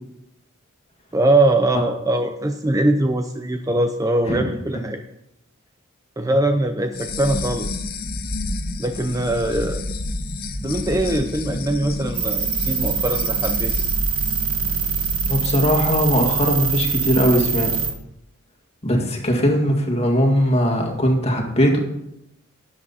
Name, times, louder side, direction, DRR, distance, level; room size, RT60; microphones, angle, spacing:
voice 1, 1.1-5.0 6.2-7.9 8.8-9.9 10.6-13.7, right 1 dB, 15° right, 7 dB, 0.5 m, -22 dB
sound 1, 6.9-15.6, left 2 dB, 45° left, 1.1 m, -30 dB
sound 2, 12.1-17.9, right 6 dB, 85° right, 1.4 m, -23 dB
voice 2, 15.3-17.7 18.8-21.8, equal, 30° left, 2 dB, 2.0 m, -19 dB
12.5 x 8.6 x 4.2 m, 0.82 s
head